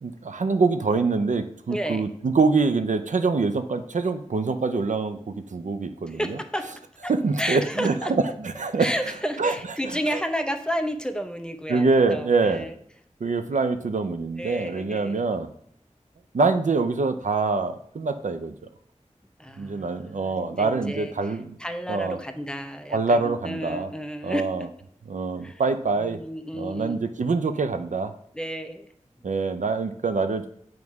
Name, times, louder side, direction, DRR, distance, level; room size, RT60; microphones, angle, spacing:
voice 1, 0.0-6.4 7.1-8.9 9.4-9.6 9.8-10.2 11.7-12.7 13.2-15.5 16.3-18.5 19.6-21.5 21.9-22.2 22.9-23.9 24.2-24.7 25.1-26.2 26.5-28.1 29.2-30.5, right 4 dB, 80° right, 9 dB, 0.5 m, -25 dB
voice 2, 1.7-2.1 6.1-6.7 7.0-7.1 7.4-8.1 8.8-12.7 14.4-15.2 19.4-24.7 25.4-25.6 26.0-27.1 28.3-28.9, equal, 5° left, 7 dB, 0.6 m, -32 dB
7.2 x 3.1 x 4.7 m, 0.67 s
wide cardioid pair, 55°, 13 cm